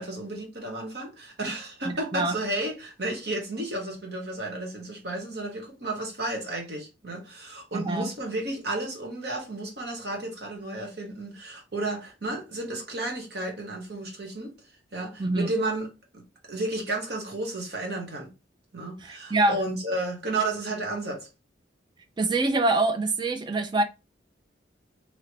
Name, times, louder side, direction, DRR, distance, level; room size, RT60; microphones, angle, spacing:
voice 1, 0.0-14.5 14.9-15.9 16.1-16.2 16.5-18.3 18.7-21.3, right 2 dB, 60° right, 1.2 m, -32 dB
voice 2, 1.8-2.3 7.7-8.1 15.2-15.5 19.0-19.6 22.2-23.8, right 2 dB, 25° right, 0.4 m, -25 dB
3.1 x 2.8 x 2.9 m
head